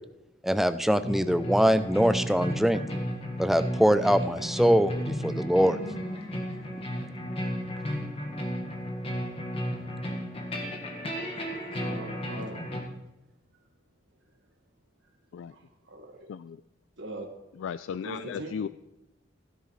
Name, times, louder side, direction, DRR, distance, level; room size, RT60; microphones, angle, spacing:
voice 1, 0.4-2.8 3.4-5.8, equal, ahead, 11 dB, 0.4 m, -23 dB
sound 1, 1.0-12.8, equal, 30° left, 1.7 m, -33 dB
voice 2, 11.6-12.6 13.5-13.6 15.0-15.1 15.4-16.3 17.0-17.3 17.9-18.5, right 1 dB, 70° right, 2 dB, 1.7 m, -41 dB
voice 3, 16.3-16.6 17.6-18.7, left 7 dB, 75° left, 14 dB, 0.3 m, -35 dB
16.0 x 10.5 x 3.2 m, 0.93 s
head